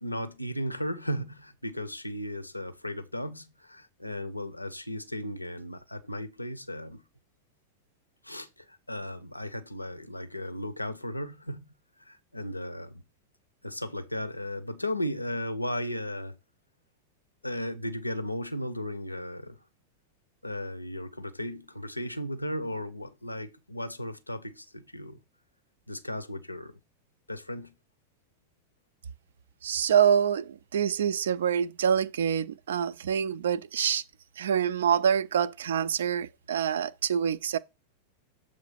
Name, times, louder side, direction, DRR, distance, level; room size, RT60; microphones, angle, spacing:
voice 1, 0.0-7.0 8.2-11.6 12.0-13.0 13.6-16.4 17.4-19.6 20.4-25.2 25.9-26.7 27.3-27.7, left 1 dB, 85° left, 0.5 m, -35 dB
voice 2, 29.6-34.0 34.4-37.6, right 8 dB, 65° right, 0.3 m, -26 dB
7.2 x 3.1 x 5.8 m
figure-of-eight pair, 90°, 0 cm